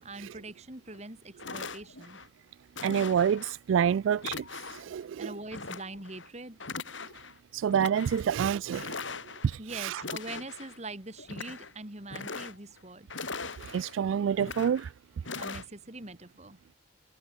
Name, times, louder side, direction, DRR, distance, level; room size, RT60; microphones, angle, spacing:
voice 1, 0.0-2.2 5.2-6.6 9.6-13.1 15.3-16.6, right 2 dB, 35° right, 3.3 m, -43 dB
sound 1, 0.9-1.0 1.4-2.3 2.8-3.6 4.2-4.9 5.5-6.3 6.6-7.3 7.7-8.2 8.7-9.6 10.0-10.8 11.2-11.7 12.0-12.8 13.1-14.0 14.4-14.9 15.2-15.6, left 4 dB, 80° left, 6.6 m, -40 dB
voice 2, 2.8-5.4 7.5-9.1 9.4-10.0 13.4-14.9, right 8 dB, 85° right, 0.3 m, -28 dB
head